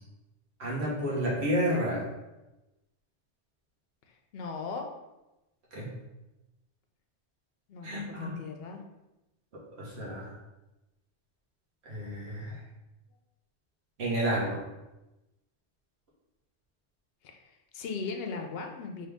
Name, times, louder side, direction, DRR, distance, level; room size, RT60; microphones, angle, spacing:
voice 1, 0.6-2.1 5.7-5.9 7.8-8.4 9.5-10.3 11.8-12.6 14.0-14.6, equal, 65° right, -6 dB, 1.4 m, -31 dB
voice 2, 4.1-4.9 7.7-8.8 17.2-19.1, left 4 dB, 65° left, 4 dB, 0.7 m, -38 dB
3.8 x 2.9 x 3.4 m, 0.99 s
omnidirectional pair, 1.2 m